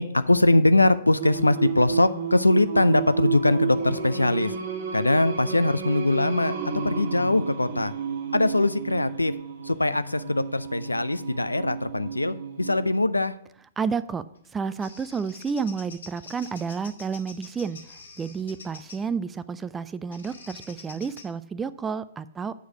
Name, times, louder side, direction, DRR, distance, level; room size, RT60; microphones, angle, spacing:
voice 1, 0.0-4.5 4.9-7.9 8.3-9.3 9.6-13.4, left 2 dB, 80° left, 14 dB, 0.4 m, -22 dB
Singing, 1.2-12.9, right 6 dB, 50° right, 1.2 m, -32 dB
voice 2, 13.8-14.2 14.5-17.8 18.2-22.5, right 5 dB, 15° right, 15 dB, 0.3 m, -30 dB
Bird vocalization bird call bird song, 14.3-19.1 20.1-21.3, left 4 dB, 60° left, 1.5 m, -46 dB
8.0 x 4.7 x 5.8 m, 0.69 s
figure-of-eight pair, 115°, 0 cm